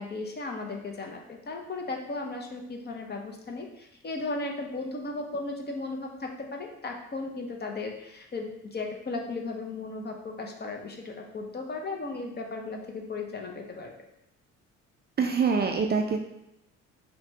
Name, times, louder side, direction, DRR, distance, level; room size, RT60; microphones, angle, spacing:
voice 1, 0.0-13.9, left 3 dB, 35° left, 2 dB, 0.7 m, -36 dB
voice 2, 15.2-16.2, right 5 dB, 35° right, 3 dB, 0.4 m, -25 dB
5.7 x 2.3 x 2.8 m, 0.83 s
cardioid pair, 90°, 30 cm